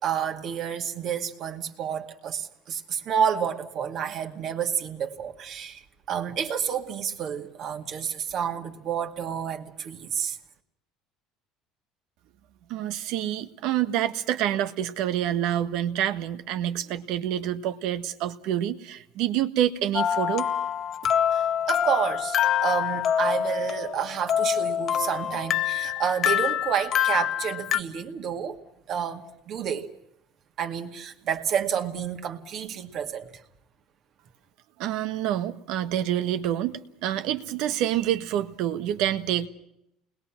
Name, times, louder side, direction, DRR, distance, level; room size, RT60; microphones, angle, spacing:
voice 1, 0.0-10.4 21.3-28.6 28.9-29.9 30.6-33.4, right 8 dB, 45° right, 2.2 m, -30 dB
voice 2, 12.7-20.5 34.8-39.5, right 11 dB, 65° right, 1.6 m, -27 dB
sound 1, 19.9-27.8, left 9 dB, 40° left, 1.0 m, -26 dB
29.0 x 21.0 x 6.1 m
cardioid pair, 140°, 0 cm